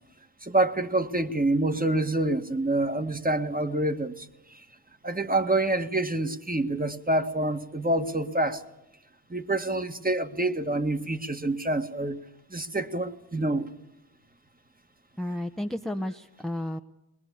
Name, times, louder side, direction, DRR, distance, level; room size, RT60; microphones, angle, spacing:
voice 1, 0.4-4.3 5.0-8.6 9.3-12.2 12.5-13.7, right 2 dB, 20° right, 1.9 m, -27 dB
voice 2, 15.2-16.8, left 1 dB, ahead, 1.0 m, -32 dB
22.0 x 21.0 x 8.4 m
cardioid pair, 65°, 40 cm